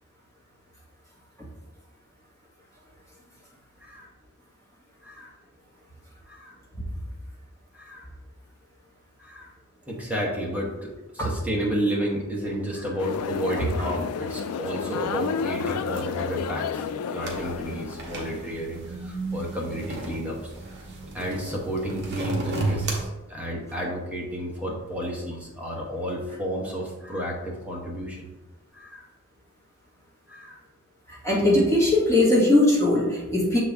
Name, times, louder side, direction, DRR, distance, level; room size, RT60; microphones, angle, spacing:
voice 1, 6.3-6.6 7.7-8.1 9.2-9.5 9.9-20.4 21.1-28.3 28.7-29.1 30.3-30.6, equal, 5° right, -3 dB, 1.1 m, -31 dB
sound 1, 13.0-18.4, left 6 dB, 80° left, 0.3 m, -31 dB
sound 2, 17.2-23.0, right 2 dB, 50° right, 1.1 m, -33 dB
voice 2, 31.1-33.6, left 1 dB, 15° left, -6 dB, 1.6 m, -20 dB
6.8 x 4.0 x 3.4 m, 1.1 s
head